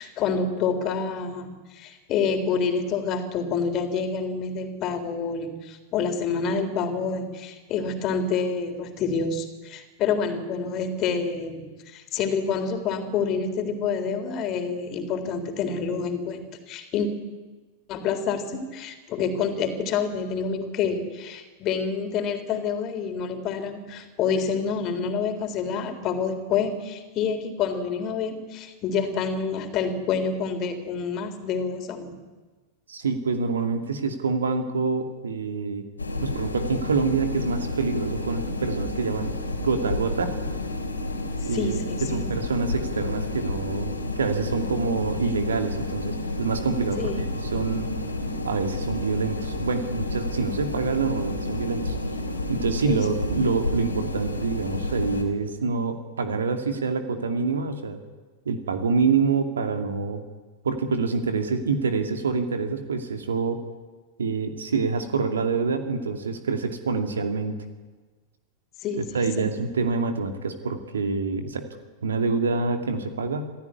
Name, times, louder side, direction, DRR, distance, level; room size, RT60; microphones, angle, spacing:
voice 1, 0.0-17.1 17.9-32.2 41.4-42.3 47.0-47.2 52.8-53.0 68.8-69.4, left 5 dB, 35° left, 6 dB, 3.8 m, -28 dB
voice 2, 32.9-35.8 36.2-39.3 39.6-40.4 41.4-41.8 42.1-47.3 47.5-47.9 48.4-51.9 52.5-58.0 58.5-60.2 60.6-63.6 64.2-67.6 69.0-71.7 72.0-73.5, right 4 dB, 70° right, 6 dB, 2.5 m, -26 dB
sound 1, 36.0-55.2, left 2 dB, 80° left, 3.7 m, -30 dB
27.5 x 16.0 x 9.7 m, 1.3 s
figure-of-eight pair, 90°, 0 cm